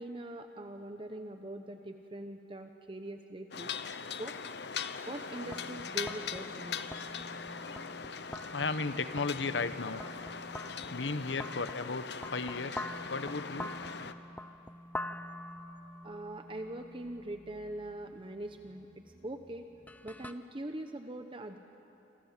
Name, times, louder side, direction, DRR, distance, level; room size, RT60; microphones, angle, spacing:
voice 1, 0.0-3.7 4.2-4.3 5.1-6.8 16.0-18.9 19.2-19.6 20.0-21.6, right 1 dB, 30° right, 6 dB, 1.0 m, -42 dB
sound 1, 3.5-14.1, left 6 dB, 65° left, 0.9 m, -41 dB
sound 2, 5.4-20.3, left 1 dB, 10° left, 0.8 m, -46 dB
voice 2, 8.5-10.0 10.9-13.8, left 4 dB, 80° left, 11 dB, 1.1 m, -35 dB
27.5 x 26.0 x 7.5 m, 2.8 s
head